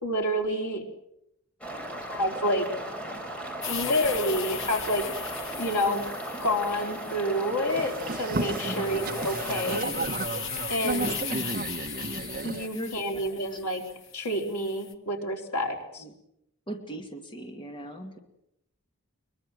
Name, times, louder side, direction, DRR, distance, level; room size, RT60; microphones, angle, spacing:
voice 1, 0.0-0.8 2.1-2.7 3.7-5.0 5.6-6.0 6.4-10.0 10.7-11.1 12.4-13.8 14.1-16.0, equal, 90° left, 2 dB, 4.3 m, -28 dB
sound 1, 1.6-9.8, right 1 dB, 5° left, 3.9 m, -36 dB
sound 2, 3.6-14.9, left 7 dB, 60° left, 1.9 m, -38 dB
Boat Water vehicle, 7.7-12.7, right 3 dB, 40° right, 1.0 m, -33 dB
voice 2, 8.7-9.0 11.2-11.6 12.7-12.9 13.3-13.6 16.0-16.2 16.7-18.2, right 1 dB, 20° left, 4 dB, 2.4 m, -39 dB
22.5 x 22.5 x 7.8 m, 0.81 s
head